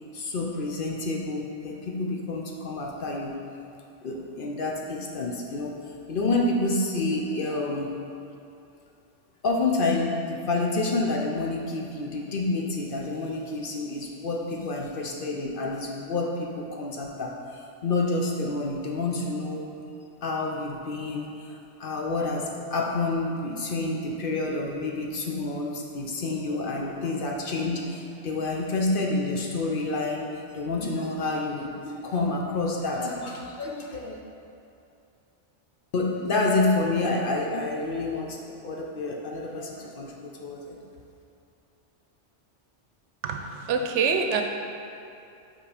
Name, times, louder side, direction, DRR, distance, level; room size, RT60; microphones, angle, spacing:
voice 1, 0.1-3.4 4.0-5.8 6.1-7.9 9.4-19.7 20.2-34.2 35.9-40.8, left 2 dB, 55° left, -1 dB, 0.7 m, -28 dB
voice 2, 43.2-44.4, right 5 dB, 80° right, 4 dB, 0.9 m, -25 dB
5.5 x 4.2 x 4.9 m, 2.7 s
omnidirectional pair, 1.2 m